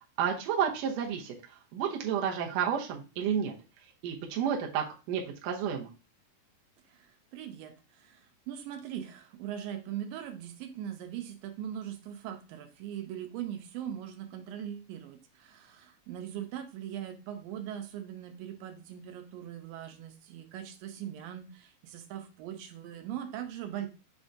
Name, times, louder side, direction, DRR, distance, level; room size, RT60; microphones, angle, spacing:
voice 1, 0.2-1.4 1.7-3.5 4.0-5.9, right 8 dB, 70° right, 0 dB, 1.7 m, -31 dB
voice 2, 7.3-7.7 8.1-8.2 8.5-23.9, right 10 dB, 90° right, 6 dB, 2.5 m, -40 dB
5.6 x 3.6 x 2.6 m, 0.31 s
omnidirectional pair, 3.9 m